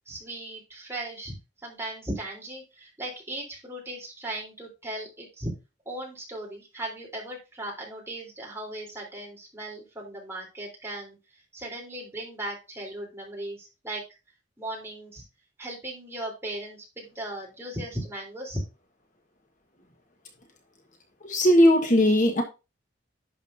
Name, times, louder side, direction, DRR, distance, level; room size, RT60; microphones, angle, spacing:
voice 1, 0.0-5.5 5.9-11.2 11.5-14.0 14.6-15.2 15.6-18.6, right 1 dB, 15° right, -2 dB, 3.6 m, -37 dB
voice 2, 21.2-22.4, equal, 40° left, 4 dB, 1.3 m, -19 dB
11.0 x 7.3 x 2.7 m, 0.29 s
head